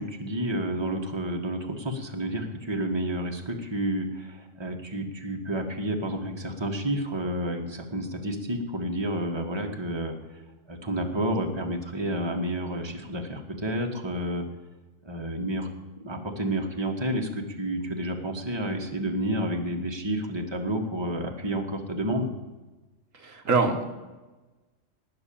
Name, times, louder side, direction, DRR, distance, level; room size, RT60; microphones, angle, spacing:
voice 1, 0.0-10.4 10.7-14.4 15.0-15.7 16.0-22.3, right 1 dB, 20° right, 2 dB, 1.7 m, -30 dB
voice 2, 23.1-23.8, right 4 dB, 80° right, 3 dB, 1.9 m, -24 dB
19.0 x 6.6 x 8.7 m, 1.2 s
omnidirectional pair, 1.3 m